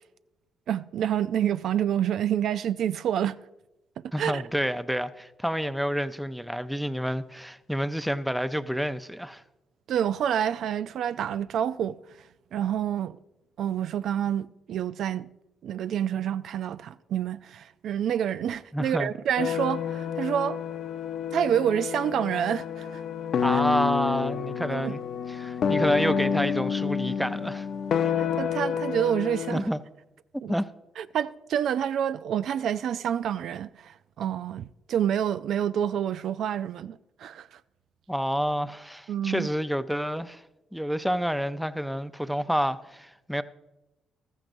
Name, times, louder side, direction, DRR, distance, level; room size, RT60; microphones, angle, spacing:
voice 1, 0.7-3.4 4.2-4.4 9.9-11.9 12.5-13.2 13.6-15.3 15.6-20.6 21.3-23.0 23.5-23.6 24.7-24.9 28.2-29.7 30.4-30.5 31.0-37.6 39.1-39.5, right 9 dB, 70° right, 0.3 m, -28 dB
voice 2, 4.1-9.4 18.7-19.1 23.4-25.0 25.3-27.7 29.5-29.8 30.5-30.7 38.1-40.4 40.7-43.4, equal, ahead, 0.5 m, -29 dB
sound 1, 19.4-29.6, left 7 dB, 60° left, 0.6 m, -29 dB
15.0 x 13.0 x 2.6 m
cardioid pair, 90°, 0 cm